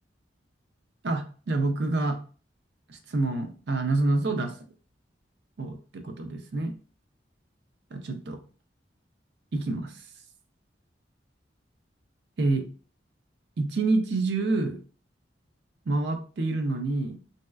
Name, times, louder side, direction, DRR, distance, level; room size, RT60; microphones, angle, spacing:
voice 1, 1.0-2.2 2.9-4.5 5.6-6.8 7.9-8.4 9.5-9.9 12.4-12.7 13.6-14.8 15.9-17.2, right 2 dB, 65° right, 6 dB, 0.5 m, -27 dB
3.1 x 2.7 x 2.3 m, 0.39 s
head